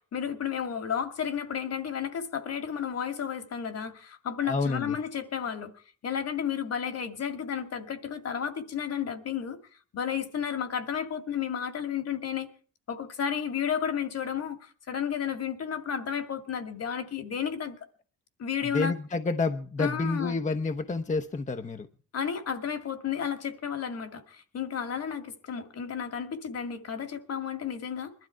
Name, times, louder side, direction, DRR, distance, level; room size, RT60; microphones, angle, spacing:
voice 1, 0.0-5.7 6.0-9.6 9.9-12.5 12.9-17.8 18.4-18.9 19.8-20.4 22.1-28.1, left 8 dB, 55° left, 8 dB, 2.2 m, -32 dB
voice 2, 4.4-5.0 18.7-21.9, left 3 dB, 25° left, 8 dB, 1.0 m, -29 dB
21.5 x 12.5 x 4.6 m, 0.40 s
cardioid pair, 90°, 30 cm